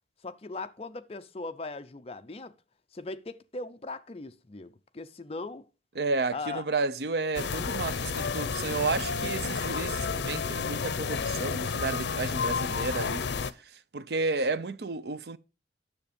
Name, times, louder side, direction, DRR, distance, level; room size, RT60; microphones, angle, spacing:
voice 1, 0.2-2.6 2.9-5.7 6.3-6.7, left 3 dB, 35° left, 0.6 m, -39 dB
voice 2, 6.0-13.5 13.9-15.4, right 3 dB, 65° right, 0.6 m, -32 dB
sound 1, 7.3-13.5, left 5 dB, 85° left, 0.6 m, -31 dB
9.7 x 7.1 x 5.1 m
head